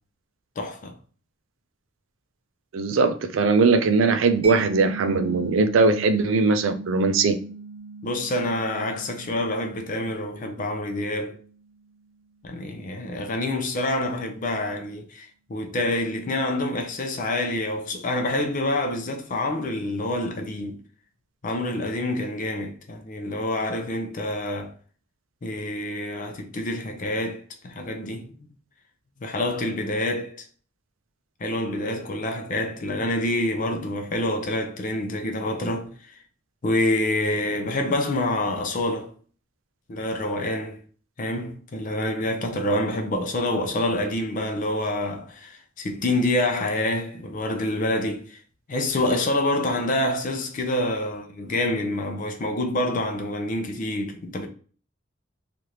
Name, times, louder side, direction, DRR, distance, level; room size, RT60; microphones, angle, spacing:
voice 1, 0.6-1.0 8.0-11.4 12.4-20.8 21.4-24.7 25.4-28.3 29.2-30.4 31.4-36.2 36.6-39.1 39.9-40.8 41.2-48.4 48.7-54.5, left 1 dB, 45° left, 0.5 m, -27 dB
voice 2, 2.7-7.4, right 4 dB, 80° right, 0.4 m, -20 dB
Mallet percussion, 4.4-11.8, right 3 dB, 30° right, 0.7 m, -39 dB
3.2 x 2.5 x 2.8 m
head